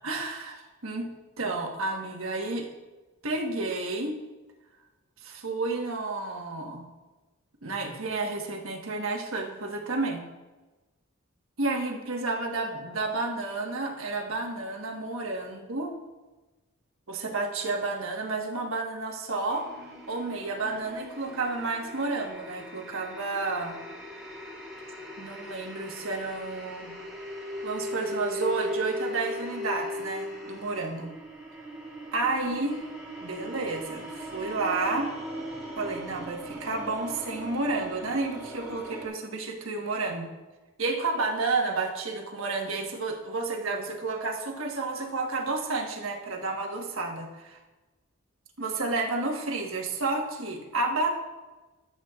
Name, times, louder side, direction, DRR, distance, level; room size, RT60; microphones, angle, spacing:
voice 1, 0.0-1.1 1.4-2.7 3.2-4.1 5.2-6.9 7.6-10.2 11.6-15.9 17.1-19.6 20.1-23.8 25.2-26.9 27.6-31.1 32.1-32.8 33.2-35.1 35.7-40.3 40.8-47.6 48.6-51.1, right 3 dB, 75° right, 1 dB, 1.4 m, -31 dB
sound 1, 19.5-39.1, equal, 5° right, 1.8 m, -39 dB
13.5 x 8.0 x 2.4 m, 1.2 s
head